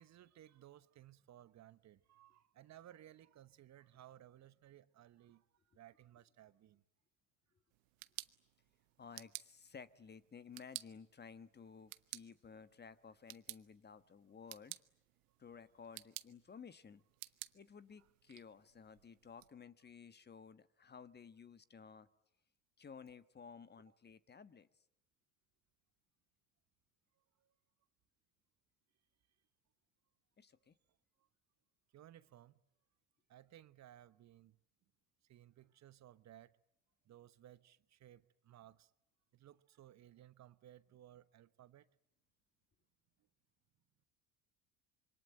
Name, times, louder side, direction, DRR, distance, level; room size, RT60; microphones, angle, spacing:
voice 1, 0.0-6.8 18.0-18.1 23.9-24.0 27.4-27.5 31.2-31.3 31.9-32.5 33.3-34.6 35.2-36.6 37.0-38.9 39.3-41.9, right 12 dB, 45° right, 1.1 m, -60 dB
sound 1, 7.7-19.5, right 20 dB, 80° right, 1.0 m, -54 dB
voice 2, 9.0-14.8 15.4-17.0 17.5-22.1 22.8-24.7 30.4-30.7, left 6 dB, 25° left, 1.3 m, -55 dB
26.0 x 23.5 x 9.1 m
hypercardioid pair, 70°, 39 cm